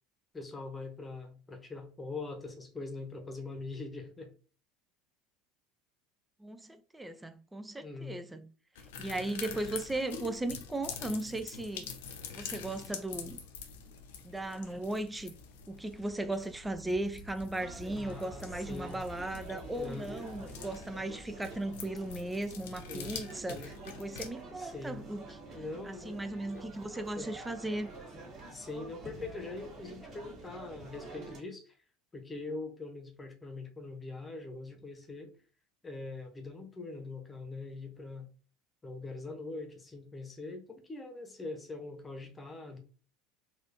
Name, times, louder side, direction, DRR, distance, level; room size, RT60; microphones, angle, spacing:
voice 1, 0.3-4.3 7.8-8.2 17.9-19.0 19.8-20.1 22.9-23.2 23.5-23.7 24.6-25.0 25.5-26.2 26.5-26.7 27.1-27.3 28.5-31.7 32.1-35.3 35.8-38.3 38.8-42.8, left 3 dB, 20° left, 1.0 m, -42 dB
voice 2, 6.4-8.5 9.0-11.9 12.3-13.4 14.2-15.3 15.7-27.9, right 2 dB, 10° right, 0.5 m, -37 dB
sound 1, 8.8-24.3, left 7 dB, 70° left, 0.5 m, -46 dB
sound 2, 15.3-22.1, right 1 dB, 90° left, 1.0 m, -53 dB
sound 3, 17.6-31.4, right 2 dB, 40° right, 1.8 m, -48 dB
4.0 x 2.6 x 2.9 m
figure-of-eight pair, 70°, 0 cm